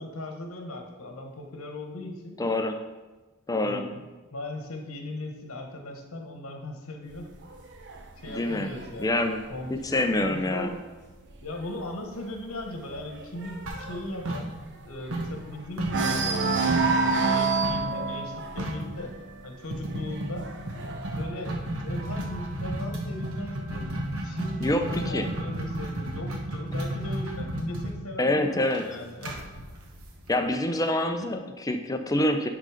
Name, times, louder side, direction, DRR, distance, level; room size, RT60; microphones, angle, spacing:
voice 1, 0.0-2.4 3.5-4.0 4.3-7.3 8.2-10.8 11.4-14.5 14.8-19.1 19.4-20.5 21.1-23.9 24.2-29.4, left 1 dB, 70° left, 3 dB, 1.2 m, -38 dB
voice 2, 2.4-2.8 3.5-3.8 8.3-8.7 9.0-9.4 9.7-10.7 24.6-25.3 28.2-28.8 30.3-32.5, left 1 dB, 15° left, 6 dB, 0.5 m, -26 dB
sound 1, 7.1-10.7 11.1-11.5 11.7-11.8 12.2-15.5 15.8-22.4 23.3-24.3, right 4 dB, 55° right, 0.8 m, -30 dB
sound 2, 13.7-14.8 15.1-17.0 17.6-17.9 18.2-18.3 18.6-18.9 19.7-30.5, right 1 dB, 70° right, 1.2 m, -33 dB
10.5 x 3.8 x 5.0 m, 1.2 s
head